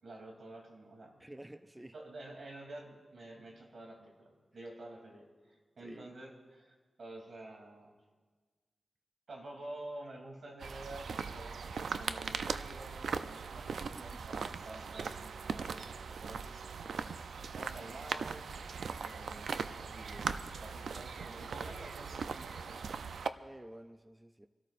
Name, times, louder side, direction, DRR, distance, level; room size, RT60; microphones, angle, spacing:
voice 1, 0.0-1.2 1.9-7.9 9.3-16.4 17.5-18.5 19.0-23.0, right 2 dB, 70° right, 0 dB, 3.0 m, -49 dB
voice 2, 1.2-1.9 5.8-6.2 13.8-14.2 17.8-18.0 23.4-24.5, right 1 dB, 15° right, 9 dB, 0.4 m, -51 dB
sound 1, 10.6-23.3, right 5 dB, 90° right, 0.4 m, -39 dB
26.5 x 13.5 x 2.6 m, 1.4 s
cardioid pair, 70°, 0 cm